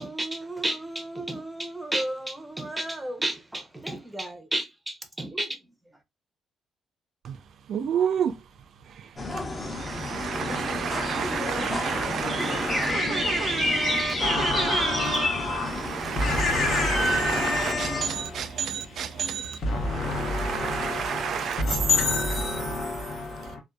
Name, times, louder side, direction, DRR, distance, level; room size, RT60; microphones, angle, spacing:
voice 1, 0.0-5.6, right 1 dB, 10° right, 0.6 m, -32 dB
voice 2, 7.7-8.4 9.7-19.6 19.8-21.6, right 8 dB, 65° right, 0.3 m, -31 dB
sound 1, 9.2-18.1, left 2 dB, 25° left, 0.7 m, -29 dB
voice 3, 14.2-19.0 19.6-23.6, left 3 dB, 65° left, 0.9 m, -28 dB
2.6 x 2.2 x 2.2 m
cardioid pair, 90°, 0 cm